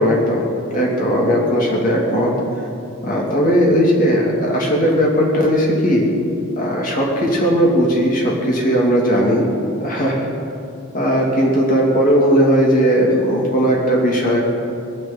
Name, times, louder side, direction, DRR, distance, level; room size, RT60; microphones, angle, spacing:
voice 1, 0.0-2.3 3.0-6.0 6.6-9.4 9.8-10.3 10.9-14.4, equal, 40° left, -3 dB, 2.8 m, -17 dB
20.0 x 6.9 x 9.6 m, 2.6 s
head